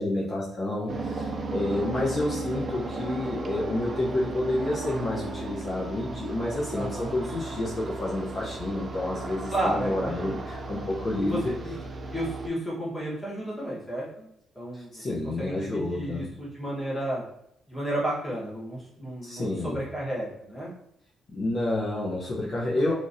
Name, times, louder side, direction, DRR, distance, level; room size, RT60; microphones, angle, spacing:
voice 1, 0.0-11.6 14.7-16.3 19.2-19.8 21.3-22.9, left 1 dB, 45° left, -7 dB, 0.7 m, -29 dB
sound 1, 0.9-12.5, right 2 dB, 40° right, 0.4 m, -35 dB
voice 2, 6.7-7.1 9.5-10.4 11.2-11.7 12.1-14.3 14.5-14.9 15.4-17.2 17.7-20.7, right 1 dB, 10° left, -7 dB, 1.3 m, -32 dB
2.9 x 2.5 x 2.6 m, 0.75 s
cardioid pair, 90°, 0 cm